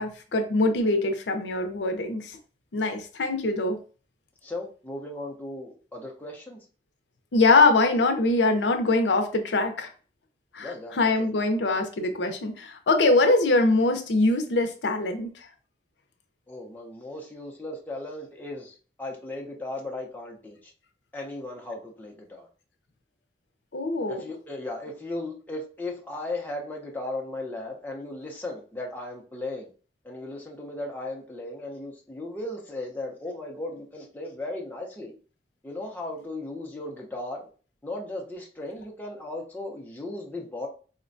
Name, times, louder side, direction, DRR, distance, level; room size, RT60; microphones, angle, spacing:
voice 1, 0.0-2.4 2.7-3.8 7.3-9.9 10.5-15.3 23.7-24.3, left 2 dB, 85° left, 6 dB, 0.5 m, -23 dB
voice 2, 4.4-6.7 10.6-11.3 16.5-20.7 21.1-22.5 24.1-29.7 30.0-35.1 35.6-37.4 37.8-40.7, left 2 dB, 10° left, -1 dB, 0.6 m, -36 dB
4.2 x 2.1 x 2.5 m, 0.38 s
head